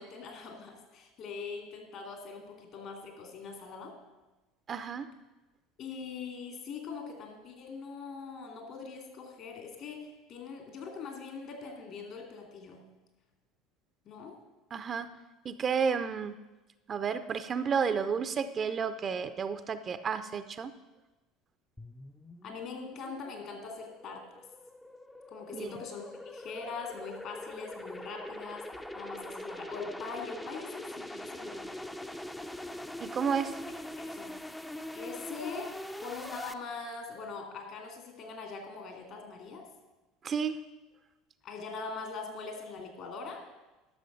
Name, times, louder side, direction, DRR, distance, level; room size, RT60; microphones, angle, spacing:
voice 1, 0.0-3.9 5.8-12.8 14.1-14.4 22.4-24.4 25.3-28.6 28.9-31.6 34.0-34.3 34.9-35.7 36.0-39.6 41.4-43.4, left 4 dB, 55° left, 3 dB, 2.8 m, -42 dB
voice 2, 4.7-5.1 14.7-15.1 15.4-16.4 16.9-20.7 25.5-25.7 33.0-33.5 40.2-40.6, right 6 dB, 35° right, 11 dB, 0.6 m, -31 dB
sound 1, 21.8-36.5, left 1 dB, 10° left, 0.6 m, -43 dB
11.5 x 6.6 x 6.4 m, 1.1 s
hypercardioid pair, 70°, 0 cm